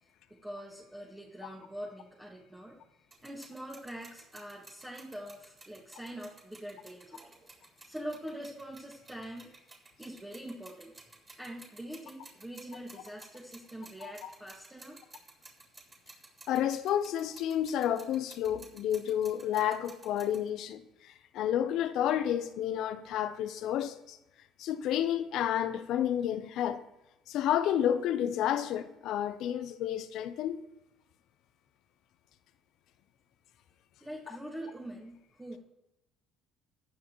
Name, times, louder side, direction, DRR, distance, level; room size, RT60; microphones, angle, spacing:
voice 1, 0.3-2.8 3.2-7.2 7.9-9.5 10.0-10.9 11.4-15.0 34.0-35.6, right 1 dB, 15° right, 1.9 m, -44 dB
sound 1, 3.1-20.5, right 3 dB, 30° right, 3.7 m, -55 dB
voice 2, 16.5-24.2 24.6-26.8 27.3-30.7, left 10 dB, 70° left, 0.7 m, -30 dB
14.5 x 9.6 x 3.1 m
supercardioid pair, 80°, 0 cm